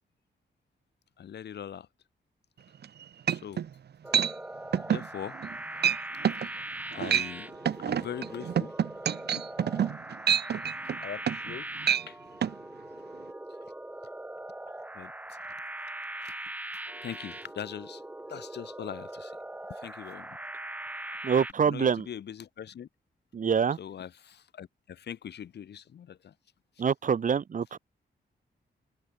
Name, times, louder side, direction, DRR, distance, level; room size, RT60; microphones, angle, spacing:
voice 1, 1.2-1.9 3.3-3.7 4.9-5.4 6.3-6.6 6.9-7.5 7.8-8.7 11.0-11.7 12.1-12.2 14.9-15.1 16.2-16.3 17.0-18.0 18.3-19.4 19.7-20.4 21.6-22.9 23.8-26.3, left 9 dB, 70° left, 4.9 m, -41 dB
sound 1, 2.8-2.9 3.3-3.7 4.1-4.3 4.7-5.1 5.4-5.6 5.8-6.0 6.2-6.5 6.9-7.3 7.7-11.5 11.8-12.1 12.4-12.5, right 9 dB, 70° right, 4.3 m, -27 dB
sound 2, 4.0-21.5, right 1 dB, 10° right, 5.5 m, -41 dB
voice 2, 21.2-22.1 23.3-23.8 26.8-27.8, right 7 dB, 45° right, 3.1 m, -25 dB
open air
wide cardioid pair, 160°, 18 cm